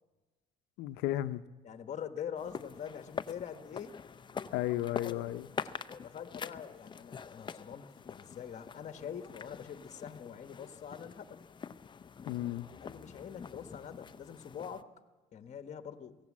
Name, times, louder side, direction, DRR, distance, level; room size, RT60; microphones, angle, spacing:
voice 1, 0.8-1.4 4.5-5.5 12.3-12.7, left 14 dB, 90° left, 0.7 m, -34 dB
voice 2, 1.6-4.0 5.0-5.3 6.0-11.4 12.8-14.9 15.3-16.2, left 8 dB, 45° left, 1.3 m, -44 dB
sound 1, 2.4-14.8, left 6 dB, 30° left, 0.6 m, -45 dB
23.0 x 16.5 x 7.4 m
cardioid pair, 110°, 17 cm